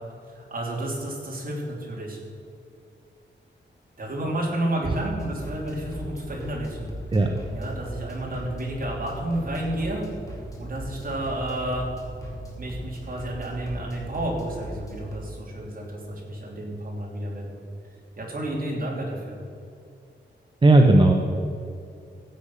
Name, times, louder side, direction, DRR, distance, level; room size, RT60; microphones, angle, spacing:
voice 1, 0.3-2.2 4.0-6.9 7.5-10.1 10.6-11.9 12.6-17.6 18.2-19.4, right 1 dB, 45° right, -2 dB, 3.3 m, -31 dB
sound 1, 5.2-15.1, right 1 dB, 15° left, 2.7 m, -38 dB
voice 2, 20.6-21.1, right 2 dB, 25° right, 2 dB, 0.9 m, -15 dB
15.0 x 8.5 x 5.7 m, 2.5 s
wide cardioid pair, 150°, 19 cm